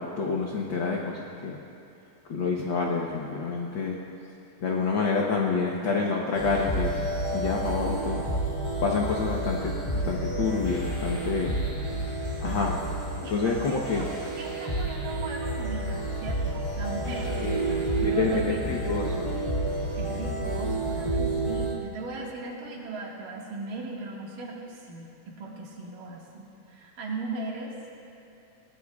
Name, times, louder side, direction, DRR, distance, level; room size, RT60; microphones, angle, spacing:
voice 1, 0.0-1.6 2.3-4.0 4.6-6.9 7.3-8.2 8.8-11.5 12.4-12.8 13.3-14.1 17.4-19.3, left 4 dB, 80° left, -1 dB, 1.0 m, -28 dB
sound 1, 6.3-21.7, right 2 dB, 25° left, 1.0 m, -30 dB
voice 2, 13.2-14.1 14.4-18.8 20.0-27.7, right 3 dB, 80° right, -3 dB, 3.5 m, -38 dB
21.0 x 18.5 x 2.4 m, 2.9 s
omnidirectional pair, 3.7 m